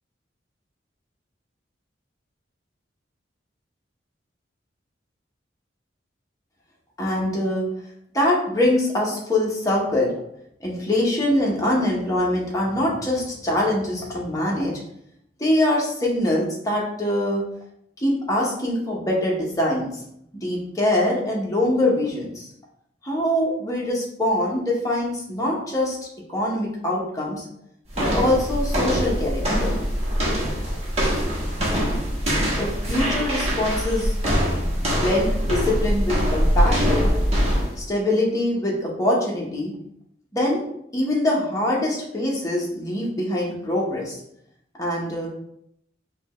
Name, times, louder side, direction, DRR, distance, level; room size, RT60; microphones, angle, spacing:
voice 1, 7.0-7.7 8.1-10.1 10.6-14.8 15.4-17.4 18.0-19.9 20.3-22.5 23.0-26.0 26.3-27.4 28.0-29.7 32.6-34.2 34.5-37.1 37.8-39.7 40.3-40.6 40.9-44.2 44.8-45.3, left 1 dB, 20° left, -4 dB, 1.0 m, -23 dB
sound 1, 27.9-37.8, equal, 35° right, 1.1 m, -23 dB
5.0 x 2.4 x 3.0 m, 0.74 s
head